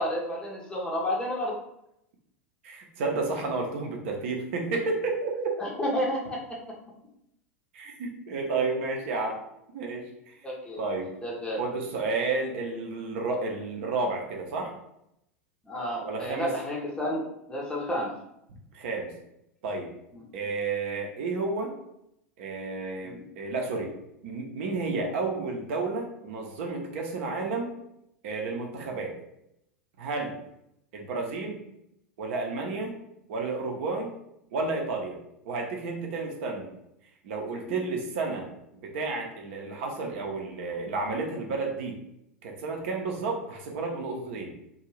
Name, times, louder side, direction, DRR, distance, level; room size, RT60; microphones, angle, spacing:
voice 1, 0.0-1.6 5.6-6.6 10.4-10.9 11.2-11.6 15.7-17.2 17.5-18.2 20.1-20.3 23.0-23.2 37.7-37.8, equal, 10° left, -3 dB, 0.6 m, -31 dB
voice 2, 2.6-5.6 7.7-9.4 9.7-10.3 10.8-11.1 11.6-14.7 16.0-16.5 18.7-19.1 19.6-19.9 20.3-21.7 22.4-23.9 24.2-27.7 28.2-29.1 30.0-30.4 30.9-31.6 32.2-32.9 33.3-34.1 34.5-35.2 35.4-36.7 37.2-38.5 38.8-42.0 42.4-44.5, right 3 dB, 55° right, 1 dB, 0.7 m, -31 dB
2.5 x 2.3 x 3.1 m, 0.80 s
figure-of-eight pair, 85°, 8 cm